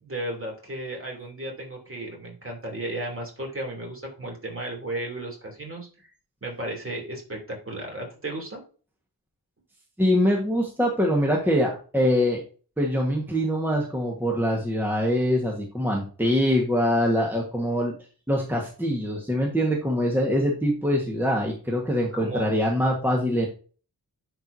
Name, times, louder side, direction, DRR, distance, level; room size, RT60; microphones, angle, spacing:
voice 1, 0.0-5.9 6.4-8.6 22.1-22.6, right 1 dB, 35° right, 0 dB, 2.9 m, -34 dB
voice 2, 10.0-12.4 12.8-17.9 18.3-23.5, equal, 5° right, -1 dB, 1.4 m, -24 dB
10.0 x 4.6 x 2.7 m, 0.38 s
wide cardioid pair, 115°, 38 cm